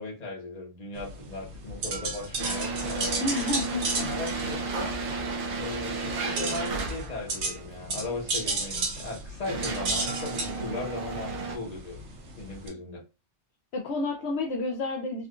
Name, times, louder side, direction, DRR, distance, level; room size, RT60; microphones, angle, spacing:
voice 1, 0.0-3.3 4.0-5.0 5.5-12.0 12.4-13.0, left 2 dB, 35° left, -2 dB, 1.0 m, -37 dB
sound 1, 0.9-12.7, right 3 dB, 75° right, 1.1 m, -34 dB
sound 2, 2.4-7.4 8.3-8.4 9.1-11.6, right 3 dB, 55° right, 0.7 m, -33 dB
voice 2, 3.2-4.1 13.7-15.3, left 3 dB, 70° left, 1 dB, 0.8 m, -30 dB
3.5 x 2.4 x 2.4 m, 0.30 s
omnidirectional pair, 1.2 m